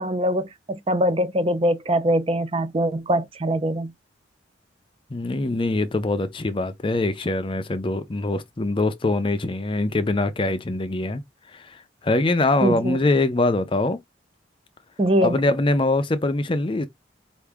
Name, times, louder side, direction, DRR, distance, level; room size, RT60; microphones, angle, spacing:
voice 1, 0.0-3.9 12.6-13.0 15.0-15.4, equal, 30° right, 0.5 m, -22 dB
voice 2, 5.1-11.2 11.5-11.8 12.0-14.0 15.2-16.9, left 2 dB, 30° left, 0.5 m, -23 dB
4.7 x 2.6 x 3.4 m
head